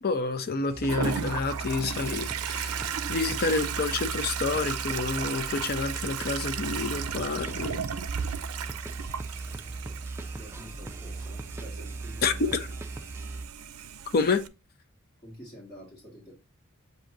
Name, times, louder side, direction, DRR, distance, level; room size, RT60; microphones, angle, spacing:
voice 1, 0.0-7.8 12.2-12.7 14.1-14.4, left 4 dB, 45° left, 0.6 m, -29 dB
sound 1, 0.7-13.5, right 2 dB, 10° right, 0.4 m, -38 dB
Toilet flush, 0.9-14.5, right 8 dB, 75° right, 0.5 m, -35 dB
voice 2, 9.5-10.0 10.3-12.6 15.2-16.3, equal, 30° left, 2.0 m, -48 dB
7.4 x 2.7 x 2.6 m
head